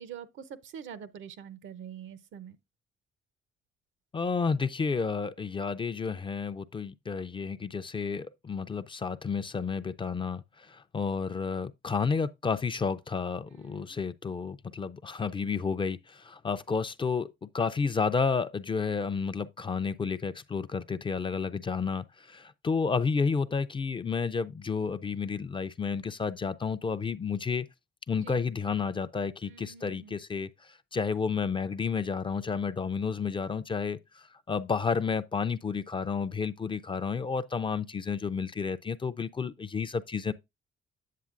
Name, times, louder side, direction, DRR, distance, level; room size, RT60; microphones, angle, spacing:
voice 1, 0.0-2.6 13.5-14.0 28.2-28.4 29.4-30.2, right 8 dB, 75° right, 0.7 m, -45 dB
voice 2, 4.1-27.7 28.1-40.3, left 5 dB, 25° left, 0.4 m, -31 dB
8.4 x 7.3 x 2.5 m
cardioid pair, 90°, 20 cm